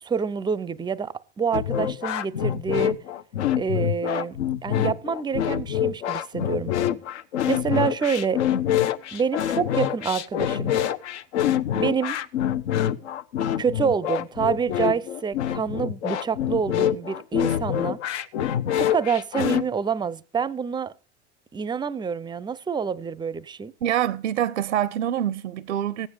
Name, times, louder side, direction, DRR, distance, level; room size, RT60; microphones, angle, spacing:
voice 1, 0.0-3.0 3.5-4.4 4.6-6.7 7.5-8.4 9.1-10.7 11.7-12.2 13.6-18.0 18.8-20.9 21.5-23.7, right 6 dB, 15° right, 0.5 m, -27 dB
sound 1, 1.5-19.6, left 10 dB, 70° left, 1.0 m, -25 dB
voice 2, 23.8-26.1, right 11 dB, 85° right, 0.6 m, -25 dB
15.5 x 9.6 x 5.0 m
hypercardioid pair, 90°, 35 cm